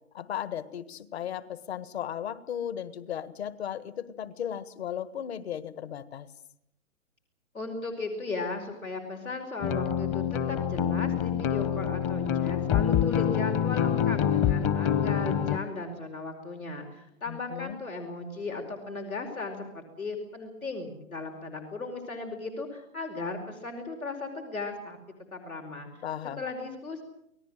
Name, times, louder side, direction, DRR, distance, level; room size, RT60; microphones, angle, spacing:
voice 1, 0.1-6.3 17.3-17.8 26.0-26.5, left 9 dB, 50° left, 15 dB, 1.7 m, -36 dB
voice 2, 7.5-25.0 25.3-25.9 26.4-27.0, left 3 dB, 85° left, 4 dB, 4.9 m, -36 dB
sound 1, 9.6-15.6, left 9 dB, 25° left, 1.0 m, -26 dB
28.0 x 19.0 x 7.6 m, 0.79 s
figure-of-eight pair, 135°, 41 cm